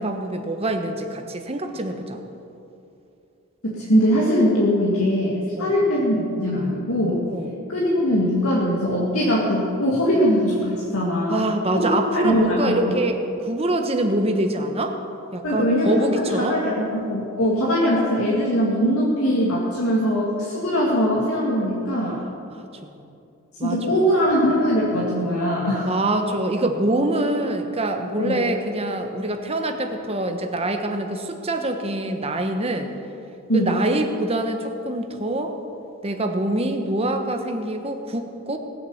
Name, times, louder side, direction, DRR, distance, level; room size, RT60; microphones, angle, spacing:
voice 1, 0.0-2.2 5.6-5.7 7.3-7.5 11.3-15.0 15.3-16.6 22.5-23.0 23.6-24.0 25.9-32.9 33.5-35.5 36.0-38.6, right 1 dB, 25° right, 5 dB, 1.2 m, -25 dB
voice 2, 3.6-7.3 7.7-11.5 11.7-12.7 15.4-16.1 16.4-22.2 23.6-25.9 28.2-28.4 33.5-33.8, equal, 75° left, -5 dB, 2.2 m, -21 dB
19.5 x 7.8 x 7.2 m, 2.7 s
head